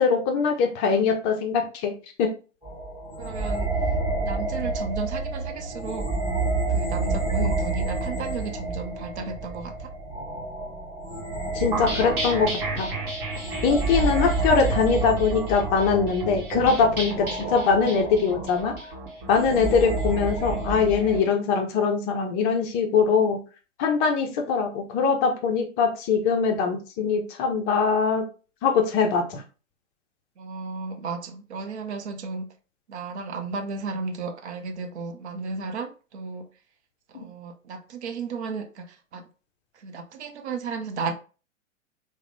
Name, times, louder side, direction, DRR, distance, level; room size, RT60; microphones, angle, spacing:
voice 1, 0.0-1.9 2.2-2.3 7.4-7.5 11.5-12.9 13.6-18.7 19.3-23.4 23.8-28.2 28.6-29.4 37.1-37.2, left 5 dB, 20° left, 0.5 m, -22 dB
sound 1, 2.6-21.2, right 3 dB, 15° right, 1.1 m, -29 dB
voice 2, 3.2-3.7 4.2-6.1 6.7-9.9 30.4-32.5 32.9-36.5 37.1-39.2 39.8-41.1, right 4 dB, 60° right, 0.6 m, -34 dB
sound 2, 11.7-21.2, right 2 dB, 45° right, 1.2 m, -34 dB
3.4 x 2.1 x 3.2 m
figure-of-eight pair, 105°, 37 cm